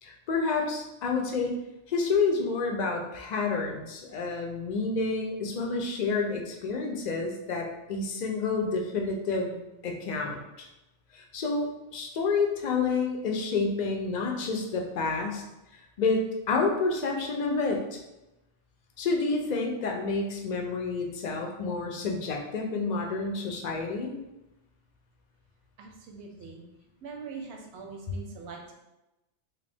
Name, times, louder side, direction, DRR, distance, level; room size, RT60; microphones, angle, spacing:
voice 1, 0.0-1.5 1.9-9.6 9.8-10.7 11.1-15.4 16.0-17.8 19.0-24.1, left 4 dB, 55° left, 1 dB, 0.5 m, -29 dB
voice 2, 25.8-26.6 27.0-28.7, right 4 dB, 75° right, 1 dB, 0.9 m, -42 dB
3.3 x 2.5 x 3.4 m, 0.96 s
omnidirectional pair, 1.2 m